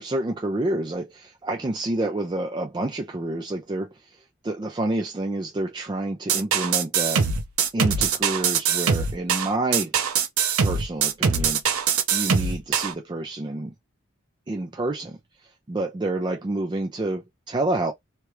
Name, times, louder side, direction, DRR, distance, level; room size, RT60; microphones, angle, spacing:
voice 1, 0.0-3.9 4.4-7.2 7.7-9.9 10.6-11.6 12.1-13.7 14.5-15.2 15.7-17.9, right 2 dB, 20° right, 0.3 m, -28 dB
sound 1, 6.3-12.9, right 6 dB, 80° right, 0.6 m, -22 dB
2.9 x 2.3 x 3.1 m
head